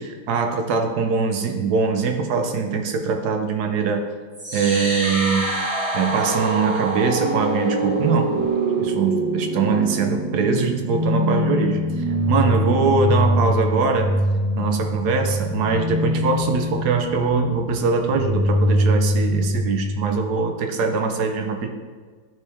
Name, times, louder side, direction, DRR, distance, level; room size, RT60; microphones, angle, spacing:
voice 1, 0.0-4.1 4.5-5.6 5.9-8.4 8.8-14.2 14.6-21.7, right 4 dB, 65° right, 5 dB, 1.3 m, -22 dB
sound 1, 4.3-20.4, equal, 15° right, 1.8 m, -24 dB
11.5 x 4.8 x 3.4 m, 1.5 s
omnidirectional pair, 2.0 m